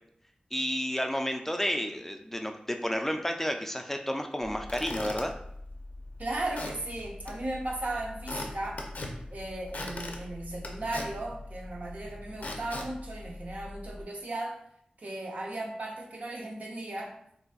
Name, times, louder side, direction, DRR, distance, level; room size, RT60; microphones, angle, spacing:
voice 1, 0.5-5.3, equal, 10° left, 5 dB, 0.3 m, -31 dB
Squeak / Wood, 4.4-14.0, left 2 dB, 70° left, 0.5 m, -41 dB
voice 2, 6.2-8.8 9.3-14.6 15.0-17.1, right 2 dB, 65° right, 0 dB, 0.6 m, -36 dB
3.9 x 2.5 x 2.3 m, 0.70 s
wide cardioid pair, 55°, 3 cm